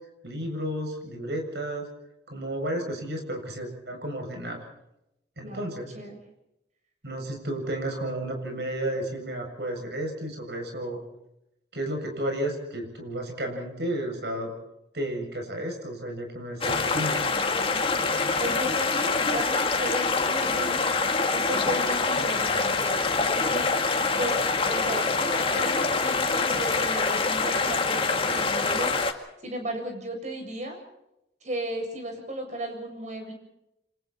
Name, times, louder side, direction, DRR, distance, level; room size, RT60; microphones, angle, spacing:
voice 1, 0.2-1.9 2.3-4.6 5.4-5.9 7.0-11.0 11.7-14.5 14.9-17.2, right 1 dB, 70° right, 3 dB, 7.7 m, -32 dB
sound 1, 16.6-29.1, left 4 dB, 30° left, 2.1 m, -25 dB
voice 2, 17.7-20.9 21.3-23.9 24.2-28.9 29.4-30.8 31.4-33.3, right 1 dB, 40° right, 3 dB, 7.6 m, -35 dB
29.5 x 26.0 x 4.4 m, 0.86 s
head